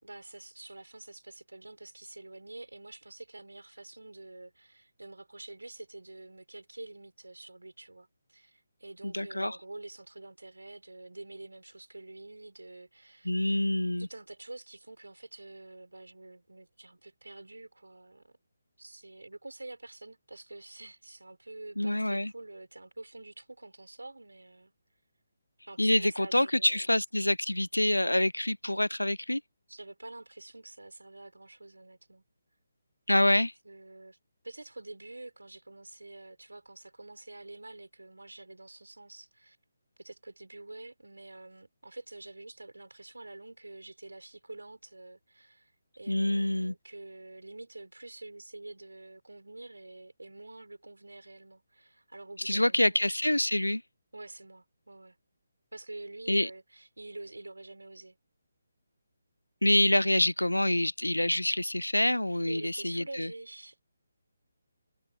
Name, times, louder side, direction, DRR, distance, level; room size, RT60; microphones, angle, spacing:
voice 1, 0.0-13.3 14.0-18.4 18.8-24.7 25.7-26.9 29.7-32.2 33.6-34.2 34.4-39.6 40.0-53.2 54.1-55.2 55.7-58.2 62.5-63.8, right 2 dB, 70° right, 4.9 m, -47 dB
voice 2, 9.0-9.6 13.2-14.1 21.8-22.3 25.8-29.4 33.1-33.5 46.1-46.7 52.4-53.8 56.3-56.5 59.6-63.3, left 1 dB, 80° left, 0.8 m, -26 dB
figure-of-eight pair, 145°, 0 cm